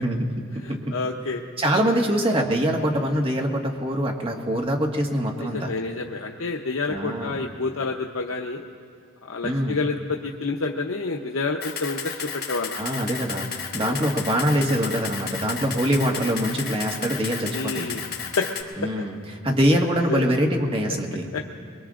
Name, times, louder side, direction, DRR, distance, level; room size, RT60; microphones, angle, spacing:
voice 1, 0.0-1.0 1.6-5.7 6.9-7.4 9.4-9.8 12.8-18.0 18.8-19.2 19.4-21.3, equal, 30° right, 1 dB, 1.6 m, -24 dB
voice 2, 0.6-1.4 5.4-8.6 9.2-12.8 13.8-14.0 17.5-18.0 18.4-18.5 20.0-20.2 21.3-21.4, left 3 dB, 75° left, 1 dB, 0.8 m, -28 dB
Camera, 11.6-18.6, left 7 dB, 50° left, 2.0 m, -33 dB
23.0 x 23.0 x 2.5 m, 2.2 s
head